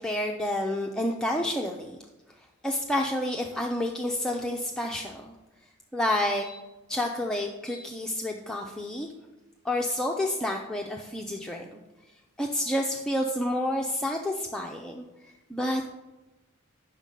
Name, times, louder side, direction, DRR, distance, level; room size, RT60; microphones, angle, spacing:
voice 1, 0.0-2.0 2.6-5.3 5.9-9.1 9.6-11.7 12.4-15.9, left 1 dB, 5° left, 0 dB, 0.5 m, -29 dB
8.9 x 6.4 x 5.3 m, 1.1 s
head